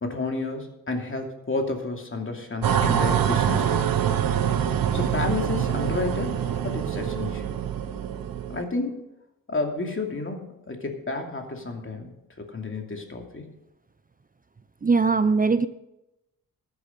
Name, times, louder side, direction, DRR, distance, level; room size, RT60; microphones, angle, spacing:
voice 1, 0.0-3.9 4.9-7.5 8.5-9.0 9.5-13.4, left 3 dB, 35° left, 3 dB, 2.7 m, -31 dB
sound 1, 2.6-8.6, right 9 dB, 70° right, 1.0 m, -25 dB
voice 2, 14.8-15.7, right 4 dB, 25° right, 13 dB, 0.7 m, -20 dB
14.0 x 8.4 x 5.3 m, 0.90 s
supercardioid pair, 50°, 36 cm